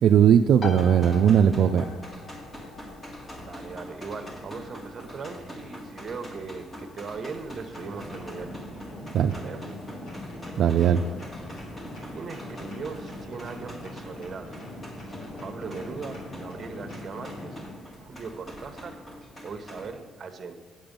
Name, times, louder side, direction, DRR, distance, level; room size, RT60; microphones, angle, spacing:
voice 1, 0.0-1.9 9.1-9.3 10.6-11.0, right 8 dB, 75° right, 7 dB, 0.3 m, -19 dB
sound 1, 0.6-15.1, left 4 dB, 45° left, 1.0 m, -46 dB
sound 2, 0.7-19.9, equal, 25° left, 2.1 m, -44 dB
voice 2, 3.4-8.5 9.3-9.6 11.0-11.3 12.1-14.5 15.4-17.6 18.0-20.5, right 4 dB, 45° right, 7 dB, 1.0 m, -39 dB
sound 3, 7.7-17.7, left 1 dB, 75° left, 3.5 m, -41 dB
8.7 x 8.0 x 5.3 m, 1.5 s
cardioid pair, 90°, 0 cm